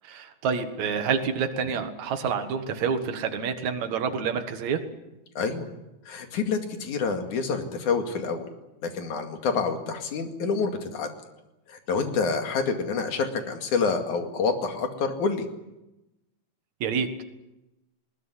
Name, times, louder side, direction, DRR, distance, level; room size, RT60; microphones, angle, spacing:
voice 1, 0.0-4.8 16.8-17.2, right 6 dB, 70° right, 6 dB, 3.0 m, -28 dB
voice 2, 5.4-5.7 6.1-8.5 8.8-11.1 11.7-15.5, left 5 dB, 80° left, 6 dB, 3.8 m, -27 dB
20.5 x 19.0 x 9.9 m, 0.96 s
omnidirectional pair, 3.5 m